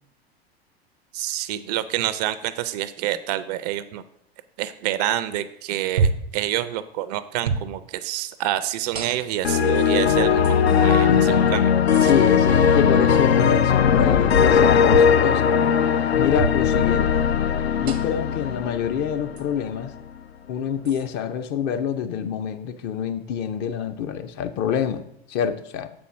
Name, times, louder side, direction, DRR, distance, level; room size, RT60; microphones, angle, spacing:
voice 1, 1.1-4.0 4.6-11.7 12.0-12.1, right 13 dB, 40° right, 14 dB, 0.4 m, -27 dB
sound 1, 6.0-6.3 7.4-7.7 8.9-9.5 10.4-10.6 11.9-12.1 14.9-15.1 16.4-16.6 17.9-18.2 19.4-19.5 20.9-21.1, right 4 dB, 85° right, 0.8 m, -26 dB
sound 2, 9.4-19.5, left 7 dB, 80° left, 0.5 m, -19 dB
voice 2, 11.1-11.6 12.0-15.5 16.1-17.3 17.8-19.9 20.5-25.0 25.3-25.9, left 8 dB, 35° left, 9 dB, 0.5 m, -26 dB
6.9 x 4.4 x 5.6 m, 0.75 s
figure-of-eight pair, 85°, 31 cm